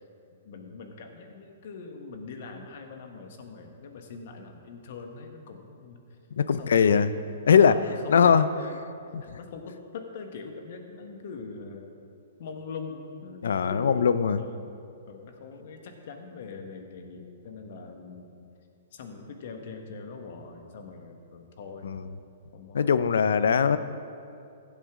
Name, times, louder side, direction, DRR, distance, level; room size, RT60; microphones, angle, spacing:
voice 1, 0.3-6.2 6.6-6.9 7.6-8.8 9.2-11.9 12.4-14.6 15.1-18.4 18.9-21.9 22.5-22.9, left 4 dB, 60° left, 4 dB, 1.4 m, -42 dB
voice 2, 6.3-7.1 7.4-7.8 8.1-8.5 9.1-9.4 13.4-14.4 21.8-22.0 22.7-23.8, left 7 dB, 80° left, 13 dB, 0.5 m, -21 dB
15.5 x 8.3 x 3.7 m, 2.6 s
hypercardioid pair, 145°, 0 cm